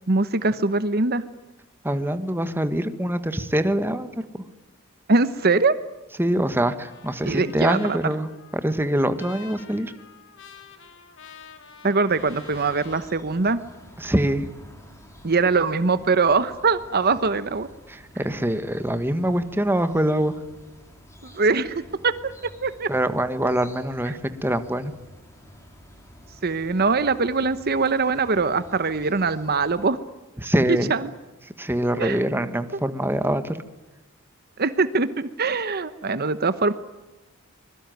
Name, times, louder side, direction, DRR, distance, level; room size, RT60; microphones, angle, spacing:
voice 1, 0.1-1.2 5.1-5.8 7.2-8.1 11.8-13.6 15.2-17.7 21.2-22.9 26.4-30.0 30.9-31.1 32.0-32.2 34.6-36.7, right 4 dB, 45° right, 13 dB, 1.0 m, -22 dB
voice 2, 1.8-4.1 6.2-9.9 14.0-14.5 17.9-20.3 22.9-24.9 30.4-30.9 31.6-33.6, right 1 dB, 10° right, 10 dB, 1.5 m, -24 dB
Trumpet, 6.3-13.1, left 5 dB, 60° left, 3.3 m, -48 dB
sound 1, 12.1-29.9, equal, 15° left, 4.8 m, -49 dB
25.0 x 21.5 x 9.3 m, 1.1 s
head